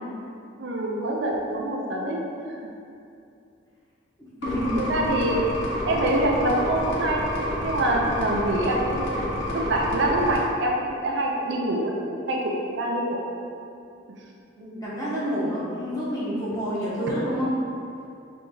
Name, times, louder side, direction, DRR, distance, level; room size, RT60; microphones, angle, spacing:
voice 1, 0.6-2.2 2.5-2.6 4.8-5.4 5.8-12.0 12.3-13.2, right 1 dB, 65° right, -1 dB, 0.5 m, -25 dB
sound 1, 4.4-10.4, left 1 dB, 70° left, 0.7 m, -29 dB
voice 2, 14.6-17.5, equal, 15° left, -11 dB, 1.2 m, -28 dB
3.7 x 3.4 x 3.9 m, 2.6 s
head